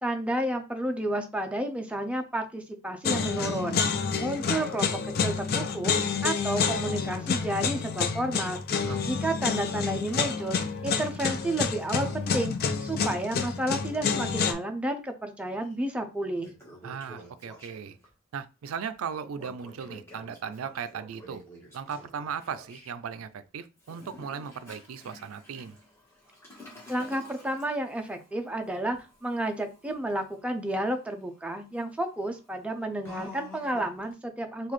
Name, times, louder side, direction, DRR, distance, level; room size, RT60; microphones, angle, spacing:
voice 1, 0.0-3.8 4.2-5.9 6.2-12.6 12.8-16.5 26.9-34.7, right 1 dB, 5° right, 0.4 m, -31 dB
sound 1, 3.0-14.5, left 6 dB, 50° left, 0.4 m, -29 dB
voice 2, 8.7-9.1 16.8-18.0 18.3-21.4 21.7-25.8, right 7 dB, 85° right, 0.4 m, -37 dB
Toilet flush, 15.6-15.7 16.2-18.1 19.3-22.9 23.8-34.1, left 1 dB, 10° left, 1.1 m, -50 dB
3.9 x 2.4 x 3.1 m
head